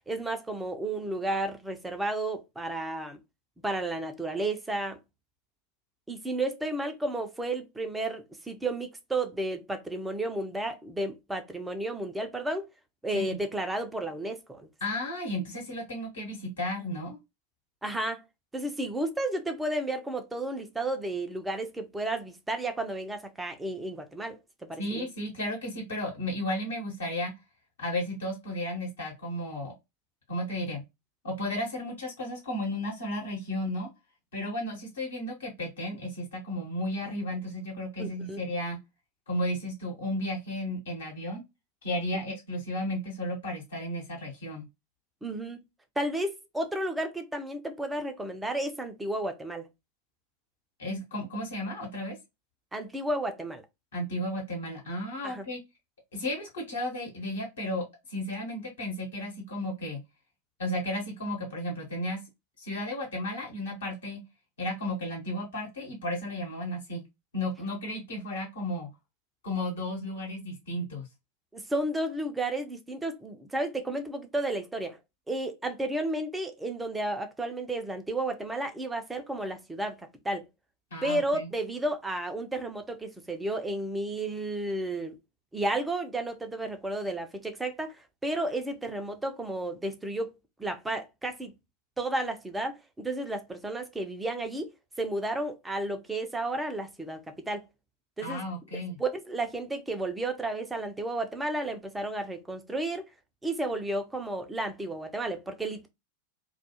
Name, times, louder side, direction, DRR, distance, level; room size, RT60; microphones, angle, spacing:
voice 1, 0.1-3.2 3.6-5.0 6.1-12.7 13.0-14.7 17.8-18.2 18.5-25.1 38.0-38.4 45.2-45.6 46.0-49.7 52.7-53.6 55.2-55.5 71.5-75.0 75.3-80.4 81.0-85.2 85.5-88.0 88.2-91.5 92.0-94.7 95.0-97.6 98.2-98.4 99.0-103.1 103.4-105.9, right 1 dB, 10° right, 0.5 m, -32 dB
voice 2, 14.8-17.2 24.8-27.3 27.8-29.7 30.3-30.8 31.2-33.9 34.3-38.8 39.3-41.4 41.8-44.6 50.8-52.2 53.9-55.6 56.1-60.0 60.6-62.2 62.6-64.2 64.6-67.0 67.3-68.9 69.4-71.1 80.9-81.5 98.2-99.0, left 1 dB, 65° left, 1.1 m, -33 dB
2.3 x 2.3 x 2.7 m
figure-of-eight pair, 90°, 0 cm